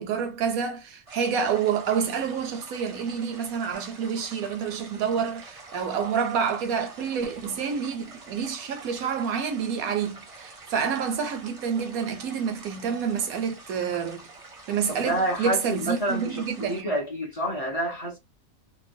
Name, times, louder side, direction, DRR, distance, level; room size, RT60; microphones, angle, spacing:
voice 1, 0.0-14.3 14.7-16.9, right 7 dB, 90° right, 1.2 m, -28 dB
sound 1, 1.1-16.8, right 3 dB, 35° right, 0.6 m, -47 dB
voice 2, 14.9-18.2, right 1 dB, 35° left, 0.7 m, -28 dB
2.9 x 2.2 x 2.5 m
omnidirectional pair, 1.4 m